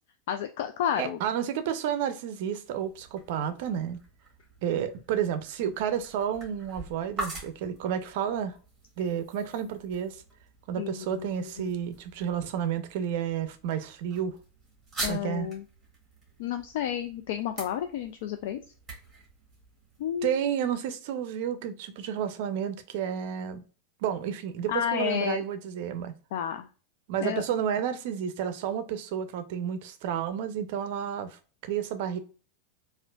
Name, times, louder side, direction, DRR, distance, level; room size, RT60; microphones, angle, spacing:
voice 1, 0.3-1.2 10.8-11.7 15.0-15.6 16.4-18.6 20.0-20.4 24.7-25.4 26.3-26.7 27.2-27.4, left 10 dB, 60° left, 0.3 m, -31 dB
voice 2, 1.0-4.0 4.6-8.5 9.0-10.2 10.7-14.4 15.1-15.5 20.2-23.6 24.0-26.1 27.1-32.2, right 9 dB, 55° right, 0.5 m, -31 dB
sound 1, 2.5-20.3, right 2 dB, 10° right, 1.7 m, -45 dB
4.3 x 2.4 x 2.3 m
supercardioid pair, 170°, 0 cm